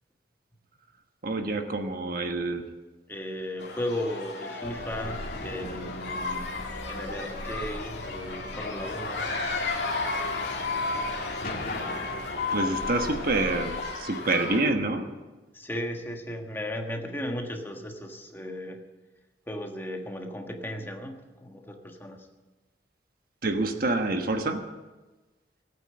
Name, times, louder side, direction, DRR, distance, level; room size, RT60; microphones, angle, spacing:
voice 1, 1.2-2.6 12.5-15.1 23.4-24.6, right 2 dB, 55° right, 5 dB, 1.3 m, -27 dB
voice 2, 3.1-6.5 6.9-9.3 15.5-18.8 19.5-22.3, left 1 dB, 15° left, 3 dB, 1.5 m, -36 dB
sound 1, 3.6-14.6, left 3 dB, 75° left, 2.5 m, -33 dB
sound 2, 4.6-13.8, left 1 dB, 55° left, 2.3 m, -39 dB
17.0 x 9.2 x 7.7 m, 1.2 s
head